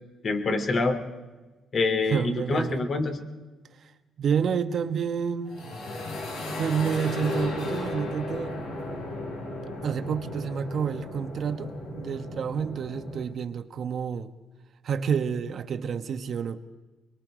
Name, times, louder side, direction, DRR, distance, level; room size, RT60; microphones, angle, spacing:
voice 1, 0.2-1.0 1.7-3.2, left 3 dB, 50° left, 6 dB, 2.8 m, -26 dB
voice 2, 2.1-2.9 3.8-3.9 4.2-5.6 6.6-8.6 9.8-14.3 14.8-16.7, right 7 dB, 60° right, 9 dB, 1.2 m, -29 dB
sound 1, 5.4-13.2, left 2 dB, 85° left, 7.6 m, -35 dB
23.0 x 22.5 x 5.0 m, 1.2 s
cardioid pair, 90°, 0 cm